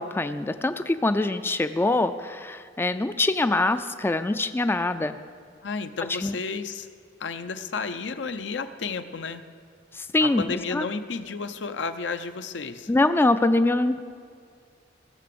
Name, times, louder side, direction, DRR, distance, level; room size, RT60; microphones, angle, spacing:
voice 1, 0.0-5.2 6.2-6.3 9.9-10.9 12.9-14.0, left 2 dB, 15° left, 10 dB, 0.3 m, -24 dB
voice 2, 5.6-6.9 7.2-9.5 10.2-12.9, left 4 dB, 75° left, 10 dB, 0.6 m, -32 dB
16.5 x 6.8 x 6.8 m, 2.1 s
head